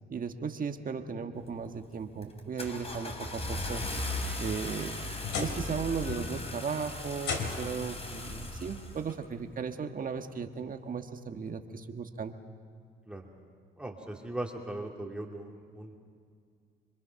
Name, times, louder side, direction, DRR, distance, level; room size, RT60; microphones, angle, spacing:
voice 1, 0.1-3.8 4.4-12.4, right 6 dB, 45° right, 6 dB, 1.6 m, -36 dB
Car / Engine starting, 1.4-1.8 2.2-9.2, left 2 dB, 30° left, 3.1 m, -38 dB
sound 1, 4.2-5.8 6.1-6.5 7.2-7.9 9.1-9.2 9.8-9.9 11.5-11.6, left 5 dB, 70° left, 3.1 m, -37 dB
voice 2, 13.8-16.0, right 1 dB, 5° right, 0 dB, 2.5 m, -39 dB
26.5 x 23.5 x 5.8 m, 2.2 s
cardioid pair, 90°, 20 cm